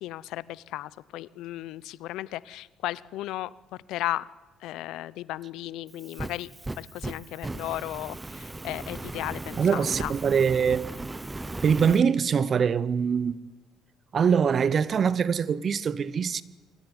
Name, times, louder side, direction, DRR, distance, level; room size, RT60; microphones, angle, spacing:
voice 1, 0.0-3.5 3.9-4.3 4.6-6.5 6.8-10.1, left 15 dB, 75° left, 0.8 m, -35 dB
Fire, 5.9-12.0, right 2 dB, 15° right, 1.0 m, -37 dB
voice 2, 9.6-10.9 11.6-13.5 14.1-16.4, right 6 dB, 45° right, 1.0 m, -23 dB
24.0 x 18.0 x 10.0 m
supercardioid pair, 75°, 0 cm